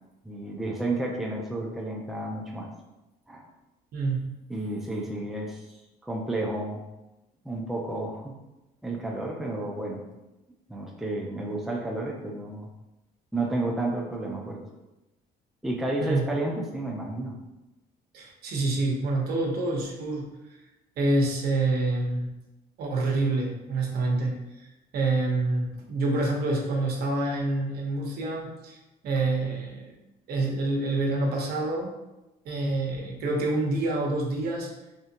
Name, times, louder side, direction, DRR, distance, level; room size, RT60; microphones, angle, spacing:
voice 1, 0.2-2.7 3.3-3.5 4.5-6.8 7.4-8.4 8.8-10.0 10.7-12.7 13.3-14.6 15.6-17.4, right 2 dB, ahead, -1 dB, 0.6 m, -31 dB
voice 2, 3.9-4.2 16.0-16.2 18.1-20.3 21.0-22.3 22.8-24.3 24.9-28.8 29.0-29.9 30.3-31.9 32.4-34.7, right 2 dB, 65° right, -1 dB, 1.0 m, -27 dB
3.6 x 3.5 x 2.8 m, 0.99 s
cardioid pair, 110°, 17 cm